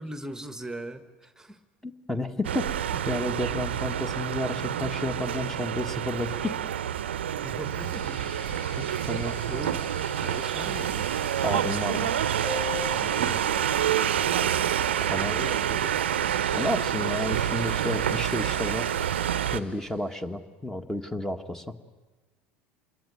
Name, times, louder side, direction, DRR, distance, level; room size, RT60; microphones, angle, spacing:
voice 1, 0.0-1.6 7.4-8.2 9.4-11.1 12.9-14.4 15.3-15.9, right 1 dB, 10° right, 10 dB, 1.5 m, -40 dB
voice 2, 1.8-6.5 8.8-9.4 11.4-12.1 15.1-15.3 16.5-18.9 19.5-21.8, left 1 dB, 5° left, 8 dB, 1.6 m, -31 dB
sound 1, 2.4-19.6, right 10 dB, 80° right, 0.8 m, -28 dB
sound 2, 7.4-20.2, left 1 dB, 85° left, 5.1 m, -45 dB
sound 3, 12.4-17.4, left 4 dB, 45° left, 6.4 m, -42 dB
27.0 x 22.0 x 9.4 m, 1.2 s
hypercardioid pair, 75°, 6 cm